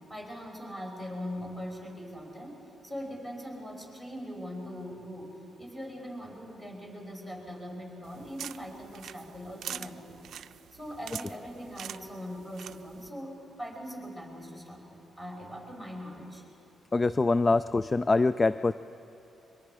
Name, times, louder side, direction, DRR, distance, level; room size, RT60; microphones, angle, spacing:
voice 1, 0.1-10.2 10.7-16.4, equal, 15° left, 0 dB, 5.1 m, -41 dB
sound 1, 8.0-13.1, right 9 dB, 75° right, 0.4 m, -44 dB
voice 2, 16.9-18.7, left 3 dB, 30° left, 14 dB, 0.4 m, -24 dB
23.5 x 23.0 x 4.9 m, 2.8 s
cardioid pair, 65°, 0 cm